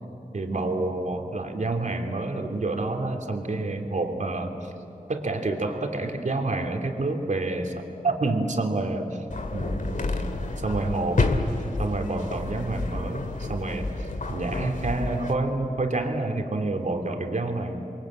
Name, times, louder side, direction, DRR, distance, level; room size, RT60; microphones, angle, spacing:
voice 1, 0.3-4.7 5.1-9.2 9.5-10.2 10.6-11.3 11.8-17.8, right 2 dB, 60° right, 3 dB, 2.9 m, -28 dB
sound 1, 9.3-15.3, left 2 dB, 65° left, 2.2 m, -29 dB
28.5 x 23.0 x 8.8 m, 2.8 s
wide cardioid pair, 65°, 14 cm